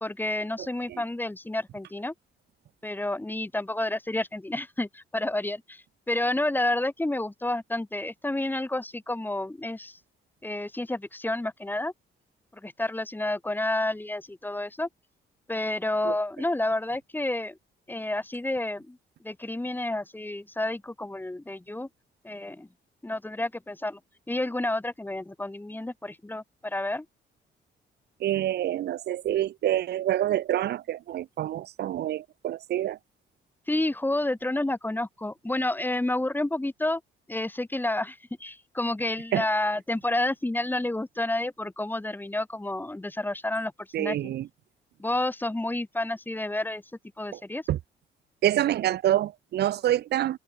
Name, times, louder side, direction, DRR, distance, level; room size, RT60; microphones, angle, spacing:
voice 1, 0.0-2.1 2.8-10.0 10.4-11.9 12.6-14.9 15.5-17.6 17.9-19.0 19.2-21.9 22.2-22.7 23.0-24.0 24.3-27.1 33.7-37.0 37.3-44.3 45.0-46.8 47.2-47.6, left 1 dB, 10° left, 1.7 m, -30 dB
voice 2, 28.2-33.0 39.3-39.4 43.9-44.5 47.3-47.4 47.7-47.8 48.4-50.4, right 12 dB, 55° right, 0.4 m, -27 dB
cardioid pair, 90°, 20 cm